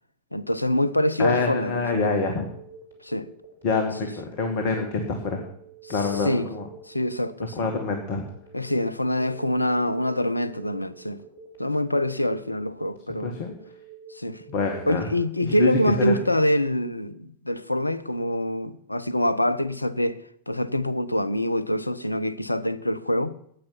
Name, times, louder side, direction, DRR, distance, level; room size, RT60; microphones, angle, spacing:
voice 1, 0.3-2.1 3.0-3.3 5.8-6.5 6.9-7.7 8.5-11.2 11.6-13.4 14.1-14.4 14.9-20.2 20.5-23.4, left 1 dB, 85° left, 0.6 m, -25 dB
Telephone, 1.0-16.3, right 6 dB, 90° right, 4.5 m, -48 dB
voice 2, 1.2-2.5 3.6-5.4 5.9-6.7 7.6-8.2 13.2-13.5 14.5-15.1 15.4-16.2, left 4 dB, 45° left, 1.8 m, -26 dB
13.0 x 9.3 x 5.8 m
figure-of-eight pair, 90°, 0 cm